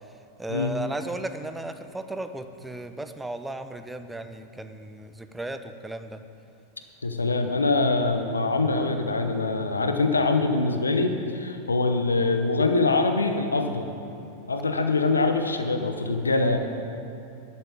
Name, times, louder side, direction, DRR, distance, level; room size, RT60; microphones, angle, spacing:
voice 1, 0.4-6.2, right 2 dB, 5° right, 9 dB, 0.7 m, -35 dB
voice 2, 7.0-13.9 14.5-16.6, left 3 dB, 75° left, 6 dB, 0.9 m, -24 dB
11.0 x 8.9 x 8.6 m, 2.6 s
figure-of-eight pair, 90°, 0 cm